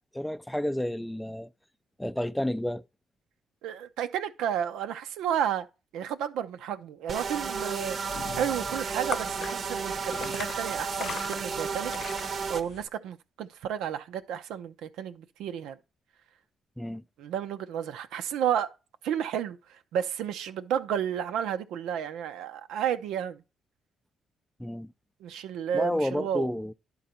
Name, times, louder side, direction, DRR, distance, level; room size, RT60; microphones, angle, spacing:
voice 1, 0.1-1.5 2.0-2.8 16.8-17.0 24.6-24.9 25.7-26.7, left 1 dB, 5° left, 0.4 m, -30 dB
voice 2, 3.6-5.7 5.9-8.0 8.3-11.9 12.2-15.8 17.2-18.7 19.0-19.6 19.9-23.4 25.2-26.5, right 9 dB, 80° right, 0.6 m, -32 dB
sound 1, 7.1-12.6, right 5 dB, 55° right, 0.8 m, -33 dB
sound 2, 7.8-12.9, left 8 dB, 65° left, 0.4 m, -41 dB
11.0 x 3.9 x 4.3 m
supercardioid pair, 60°, 0 cm